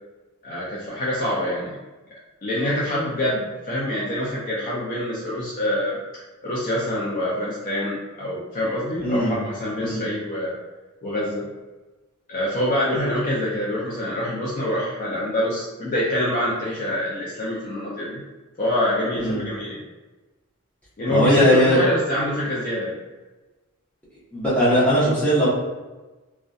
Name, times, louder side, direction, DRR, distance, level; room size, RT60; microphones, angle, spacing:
voice 1, 0.4-1.8 2.4-6.0 6.4-10.5 11.0-11.4 12.3-18.2 18.6-19.8 21.0-23.0, left 1 dB, 40° left, -7 dB, 0.4 m, -25 dB
voice 2, 9.0-9.4 9.8-10.0 19.2-19.4 21.1-21.9 24.3-25.5, equal, 5° left, -10 dB, 0.8 m, -19 dB
2.6 x 2.2 x 2.2 m, 1.2 s
head